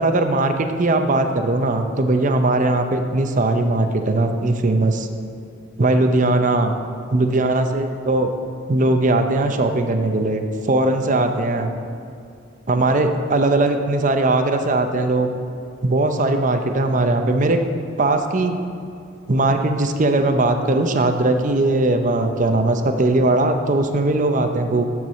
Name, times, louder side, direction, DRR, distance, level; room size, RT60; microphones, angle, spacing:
voice 1, 0.0-5.1 5.8-6.7 7.1-8.3 8.7-11.7 12.7-15.3 15.8-17.6 18.0-18.5 19.3-24.8, right 2 dB, 40° right, 6 dB, 0.6 m, -19 dB
12.0 x 4.7 x 7.1 m, 2.4 s
head